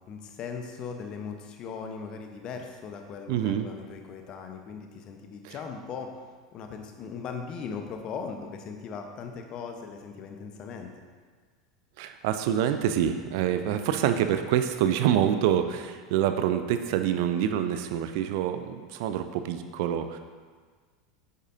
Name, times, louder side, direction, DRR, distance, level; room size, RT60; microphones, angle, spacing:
voice 1, 0.1-6.1 6.5-10.9, left 5 dB, 40° left, 4 dB, 1.1 m, -39 dB
voice 2, 3.3-3.7 5.4-5.6 12.0-20.2, right 10 dB, 55° right, 9 dB, 0.6 m, -26 dB
9.6 x 8.6 x 2.8 m, 1.6 s
figure-of-eight pair, 80°, 2 cm